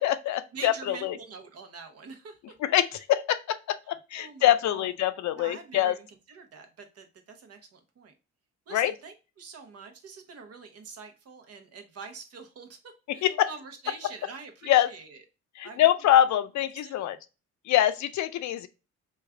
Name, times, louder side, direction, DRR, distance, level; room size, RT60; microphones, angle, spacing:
voice 1, 0.0-1.2 2.6-6.0 8.7-8.9 13.2-13.5 14.7-14.9 15.6-17.2 17.7-18.7, left 12 dB, 65° left, 0.5 m, -24 dB
voice 2, 0.5-2.5 4.1-4.9 5.4-8.1 8.7-12.8 13.1-15.2 15.6-15.9 16.8-17.1, right 4 dB, 55° right, 0.9 m, -45 dB
3.2 x 2.4 x 3.4 m
cardioid pair, 90°, 30 cm